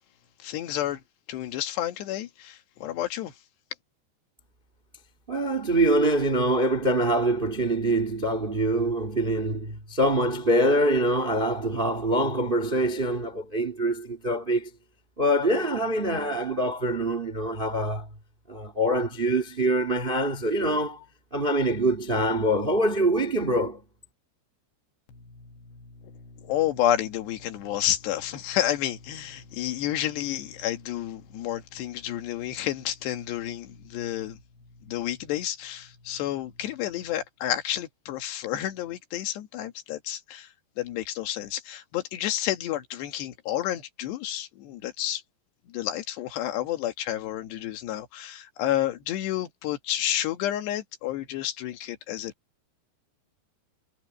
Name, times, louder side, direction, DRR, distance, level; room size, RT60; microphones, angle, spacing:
voice 1, 0.4-1.0 1.3-3.3 25.1-34.4 34.8-40.5 40.8-45.2 45.7-52.3, left 12 dB, 70° left, 3.8 m, -30 dB
voice 2, 5.3-14.7 15.2-18.1 18.5-21.0 21.3-23.8, right 1 dB, 65° right, 0.5 m, -24 dB
omnidirectional pair, 5.2 m